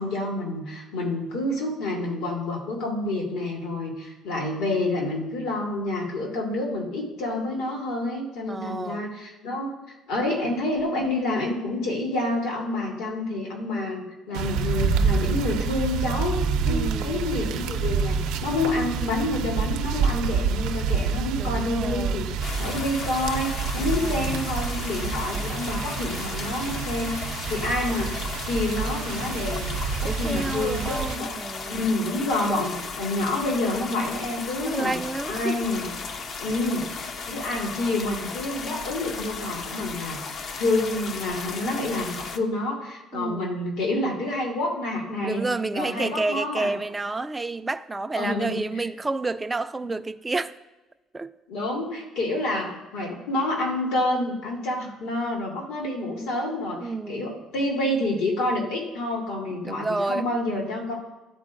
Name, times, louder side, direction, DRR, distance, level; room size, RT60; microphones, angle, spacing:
voice 1, 0.0-9.7 10.1-16.4 16.7-31.3 31.7-35.0 35.3-35.9 36.4-45.4 45.7-46.7 48.2-48.8 51.5-60.9, left 2 dB, 80° left, -1 dB, 2.1 m, -28 dB
voice 2, 8.5-9.1 16.7-17.2 21.4-22.3 23.8-24.3 30.0-31.8 34.6-35.6 43.1-43.6 45.2-50.5 51.1-51.3 56.8-57.4 59.6-60.3, right 3 dB, 10° right, 8 dB, 0.3 m, -30 dB
sound 1, 14.3-31.2, right 5 dB, 85° right, 0.5 m, -28 dB
sound 2, 22.4-42.4, left 4 dB, 40° left, 0.5 m, -35 dB
13.0 x 4.5 x 2.5 m, 1.1 s
cardioid pair, 155°, 0 cm